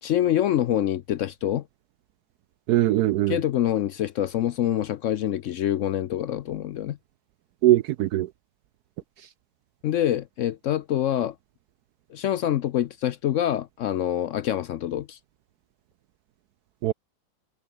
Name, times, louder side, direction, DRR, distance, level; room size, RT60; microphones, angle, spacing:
voice 1, 0.0-1.7 3.3-7.0 9.8-11.3 12.1-15.2, left 11 dB, 70° left, 0.7 m, -25 dB
voice 2, 2.7-3.4 7.6-8.3 9.2-9.3 16.8-16.9, right 14 dB, 70° right, 1.1 m, -21 dB
omnidirectional pair, 1.8 m